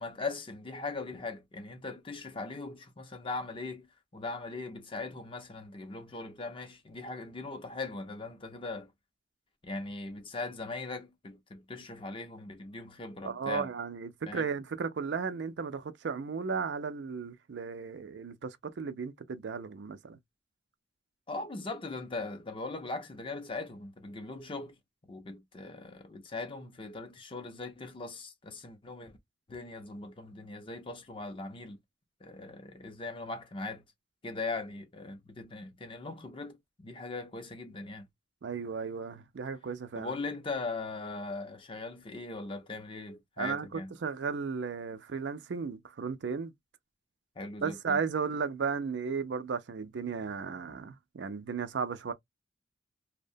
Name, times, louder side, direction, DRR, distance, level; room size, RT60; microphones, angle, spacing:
voice 1, 0.0-3.9 4.1-8.9 9.6-13.7 14.3-14.5 21.3-24.8 25.1-29.2 29.5-31.8 32.2-33.8 34.2-38.1 40.0-44.0 47.4-48.0, left 3 dB, 30° left, 0.6 m, -40 dB
voice 2, 13.2-20.2 38.4-40.1 43.4-46.5 47.6-52.1, right 5 dB, 70° right, 0.4 m, -35 dB
2.7 x 2.1 x 2.6 m
head